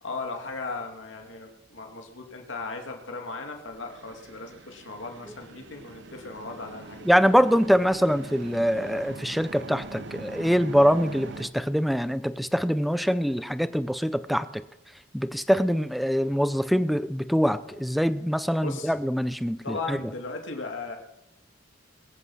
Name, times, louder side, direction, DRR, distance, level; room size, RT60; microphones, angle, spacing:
voice 1, 0.0-7.1 18.6-18.9 19.6-21.0, left 3 dB, 70° left, 3 dB, 2.3 m, -37 dB
sound 1, 3.7-11.5, right 3 dB, 65° right, 0.9 m, -43 dB
voice 2, 7.1-14.6 15.1-20.0, equal, ahead, 14 dB, 0.5 m, -24 dB
21.5 x 8.3 x 5.6 m, 0.91 s
head